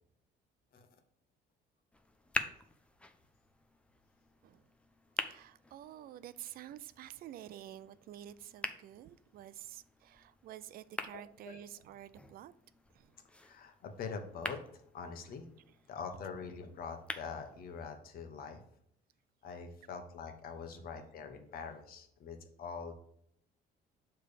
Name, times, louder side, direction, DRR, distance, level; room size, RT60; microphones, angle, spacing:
sound 1, 1.9-17.9, left 1 dB, 5° left, 0.5 m, -46 dB
voice 1, 5.2-12.5 12.9-13.1, right 11 dB, 60° right, 0.4 m, -50 dB
voice 2, 13.4-15.5 15.9-18.6 19.4-22.9, left 5 dB, 60° left, 1.1 m, -44 dB
6.5 x 3.4 x 5.1 m
cardioid pair, 110°, 17 cm